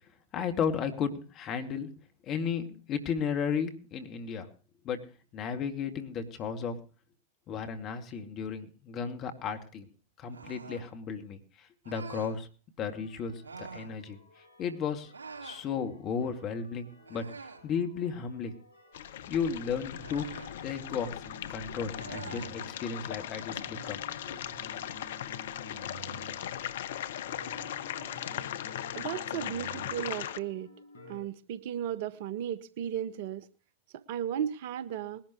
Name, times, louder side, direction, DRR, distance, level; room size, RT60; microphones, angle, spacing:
voice 1, 0.3-1.9 2.2-4.5 4.8-5.0 5.3-6.8 7.5-9.9 10.2-12.5 12.8-14.2 14.6-15.1 15.4-17.2 17.6-18.5 19.3-21.2 21.5-24.4, left 6 dB, 35° left, 2.4 m, -34 dB
sound 1, 10.3-10.9 11.8-12.4 13.4-13.9 15.1-15.7 17.1-17.7 20.0-20.6 21.9-22.6, right 4 dB, 80° right, 3.9 m, -45 dB
sound 2, 12.8-31.2, equal, 80° left, 5.6 m, -51 dB
sound 3, 18.9-30.4, left 11 dB, 65° left, 0.8 m, -38 dB
voice 2, 29.0-30.7 31.1-33.5 33.9-35.2, right 10 dB, 55° right, 0.9 m, -35 dB
20.5 x 12.0 x 3.1 m
figure-of-eight pair, 95°, 0 cm